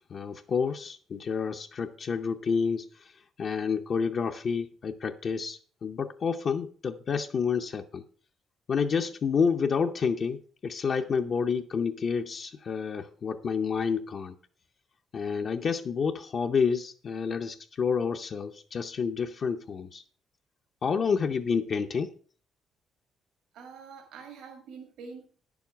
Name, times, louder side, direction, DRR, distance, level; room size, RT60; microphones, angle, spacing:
voice 1, 0.1-8.0 8.7-14.4 15.1-20.0 20.8-22.1, left 6 dB, 45° left, 0.6 m, -29 dB
voice 2, 23.5-25.2, right 5 dB, 85° right, 2.2 m, -45 dB
10.0 x 7.1 x 5.7 m
cardioid pair, 135°, 0 cm